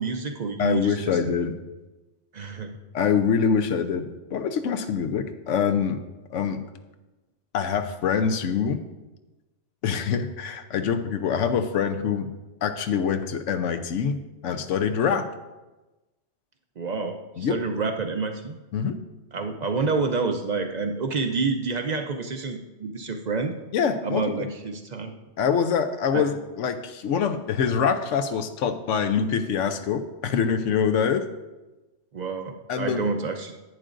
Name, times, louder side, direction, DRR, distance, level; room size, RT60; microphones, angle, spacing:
voice 1, 0.0-1.4 2.3-2.8 16.8-18.6 19.3-23.5 24.0-25.1 26.1-26.2 32.1-33.6, right 4 dB, 50° right, 5 dB, 0.5 m, -28 dB
voice 2, 0.6-1.5 2.9-6.0 6.3-6.6 7.5-8.8 9.8-12.3 12.6-15.3 17.4-17.6 18.7-19.0 23.7-24.5 25.4-31.2 32.7-33.0, left 7 dB, 85° left, 9 dB, 1.0 m, -25 dB
10.5 x 9.0 x 2.5 m, 1.1 s
omnidirectional pair, 1.2 m